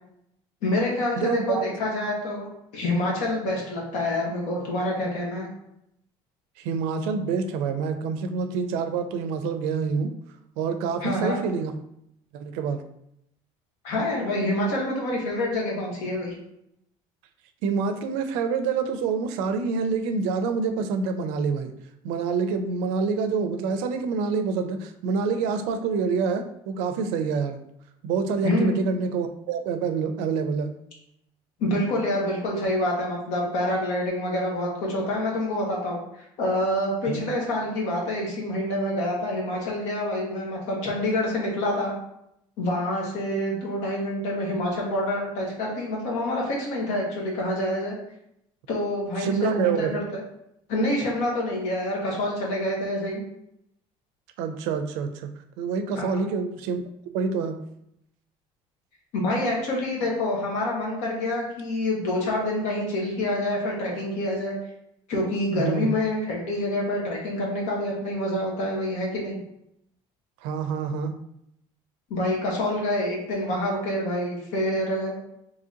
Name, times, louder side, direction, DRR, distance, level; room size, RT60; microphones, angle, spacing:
voice 1, 0.6-2.5 2.7-5.5 11.0-11.4 13.8-16.3 28.4-28.8 31.6-36.0 36.4-41.9 42.6-47.9 48.7-50.2 50.7-53.2 56.0-56.2 59.1-64.5 65.1-69.4 72.1-75.1, left 1 dB, 70° left, -2 dB, 1.2 m, -27 dB
voice 2, 1.2-1.6 6.6-10.1 10.6-11.7 12.3-12.8 17.6-21.7 22.0-27.6 28.0-30.7 37.1-37.3 49.2-50.0 54.4-55.3 55.6-56.8 57.1-57.6 65.5-65.9 70.4-71.2, right 5 dB, 90° right, 8 dB, 0.5 m, -27 dB
2.9 x 2.7 x 3.7 m, 0.77 s
cardioid pair, 175°, 12 cm